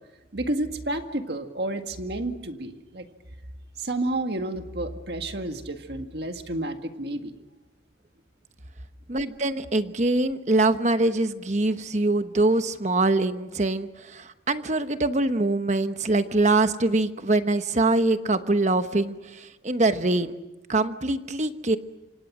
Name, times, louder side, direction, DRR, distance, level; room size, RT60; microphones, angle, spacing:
voice 1, 0.3-3.1 3.8-7.3, right 1 dB, 60° right, 6 dB, 1.9 m, -30 dB
voice 2, 9.1-20.3 20.7-21.8, right 2 dB, 40° right, 9 dB, 1.1 m, -23 dB
27.5 x 26.0 x 6.2 m, 1.1 s
head